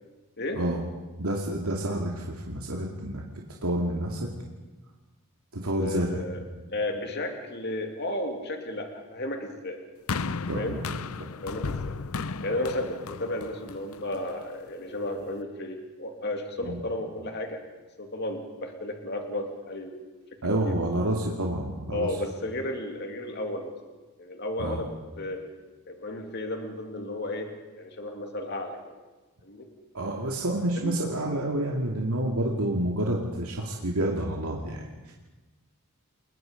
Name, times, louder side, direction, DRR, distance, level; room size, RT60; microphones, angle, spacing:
voice 1, 1.2-3.2 3.6-4.3 5.5-6.2 10.5-11.0 16.6-16.8 20.4-22.1 24.6-24.8 29.9-35.1, right 1 dB, 80° right, -1 dB, 2.5 m, -29 dB
voice 2, 5.8-6.4 6.7-9.8 10.5-10.8 11.4-11.9 12.4-17.6 18.0-20.0 20.6-20.7 21.9-23.8 24.2-24.9 25.2-25.4 25.9-28.8 29.4-29.7 30.8-30.9, left 1 dB, 50° left, 4 dB, 2.7 m, -33 dB
sound 1, 10.1-14.4 15.2-15.3, left 4 dB, 75° left, 0.7 m, -34 dB
29.5 x 21.5 x 5.3 m, 1.2 s
head